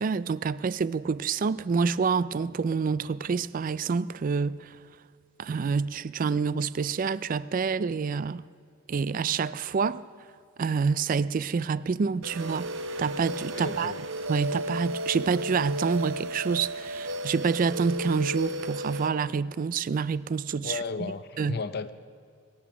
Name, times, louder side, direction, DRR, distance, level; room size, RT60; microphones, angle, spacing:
voice 1, 0.0-4.7 5.4-8.4 8.9-10.0 10.6-12.7 13.0-13.9 14.3-20.8 21.4-21.6, right 5 dB, 45° right, 0.3 m, -27 dB
sound 1, 12.2-19.1, right 1 dB, 75° right, 0.9 m, -34 dB
voice 2, 13.5-14.0 20.6-21.9, left 4 dB, 55° left, 0.6 m, -34 dB
22.0 x 10.0 x 6.1 m
head